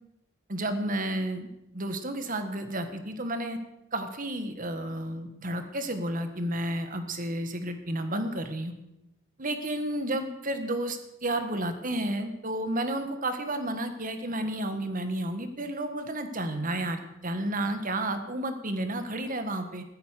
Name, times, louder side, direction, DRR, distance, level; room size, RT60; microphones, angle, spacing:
voice 1, 0.5-1.5 1.7-3.6 3.9-8.7 9.4-19.8, right 1 dB, 40° right, 8 dB, 1.6 m, -31 dB
15.5 x 12.5 x 6.6 m, 0.88 s
head